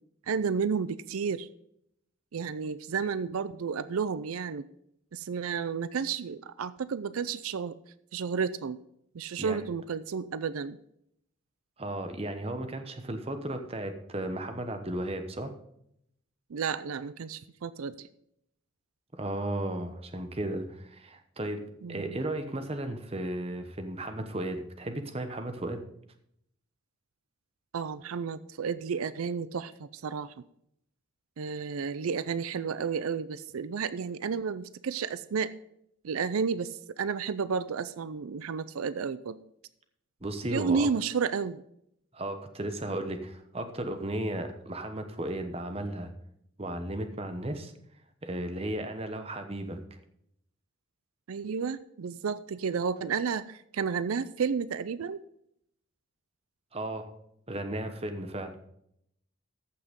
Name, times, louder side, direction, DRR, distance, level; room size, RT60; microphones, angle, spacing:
voice 1, 0.3-1.5 2.3-4.6 5.1-7.7 8.1-8.8 9.1-10.8 16.5-18.1 21.8-22.2 27.7-30.3 31.4-35.5 36.0-39.4 40.5-41.6 51.3-55.2, right 6 dB, 90° right, 15 dB, 0.5 m, -32 dB
voice 2, 11.8-15.5 19.1-25.8 40.2-40.9 42.1-46.1 46.6-47.7 48.2-49.8 56.7-57.1 57.5-58.5, right 1 dB, 30° right, 7 dB, 1.0 m, -35 dB
14.5 x 5.9 x 5.2 m, 0.74 s
head